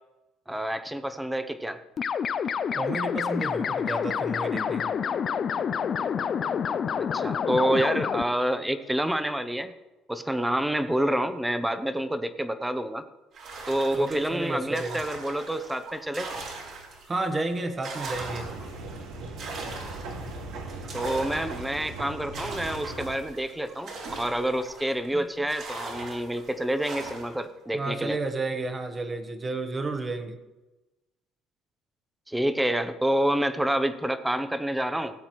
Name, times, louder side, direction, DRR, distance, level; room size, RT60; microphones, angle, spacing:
voice 1, 0.5-1.8 7.0-9.7 10.1-13.0 13.7-16.3 20.9-28.2 32.3-35.1, right 1 dB, 5° right, 11 dB, 0.8 m, -28 dB
sound 1, 2.0-8.2, left 7 dB, 40° left, 0.4 m, -28 dB
voice 2, 2.7-4.9 13.9-15.0 17.1-18.5 25.1-25.2 27.7-30.4, right 2 dB, 25° right, 8 dB, 1.2 m, -31 dB
sound 2, 13.3-17.2 17.6-25.1 25.5-27.4, right 3 dB, 55° right, 3.2 m, -40 dB
sound 3, 18.1-23.1, right 2 dB, 80° right, 1.9 m, -38 dB
17.5 x 8.0 x 3.1 m, 1.1 s
cardioid pair, 105°, 0 cm